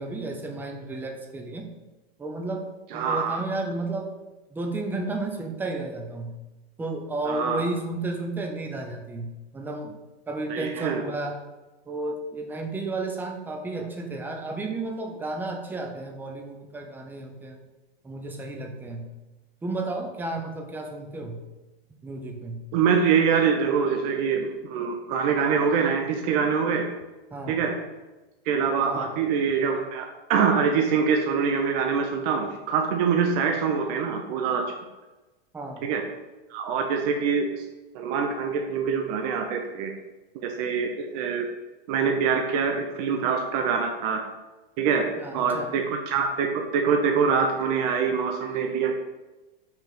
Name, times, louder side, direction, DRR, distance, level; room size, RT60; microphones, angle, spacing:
voice 1, 0.0-1.7 2.2-2.6 2.9-4.1 4.5-6.3 6.8-9.9 10.3-11.4 11.9-17.6 18.0-19.1 19.6-21.4 22.0-22.6 27.3-27.6 28.8-29.1 35.5-35.9 45.2-45.7, right 2 dB, 5° right, 3 dB, 0.5 m, -32 dB
voice 2, 2.9-3.4 7.3-7.6 10.5-11.0 22.7-26.9 27.5-27.7 28.5-34.6 35.8-36.0 36.5-37.6 37.9-39.9 40.3-41.5 41.9-44.2 44.8-45.0 45.3-48.9, right 6 dB, 40° right, 3 dB, 0.8 m, -24 dB
5.7 x 3.5 x 5.9 m, 1.1 s
supercardioid pair, 150°, 30 cm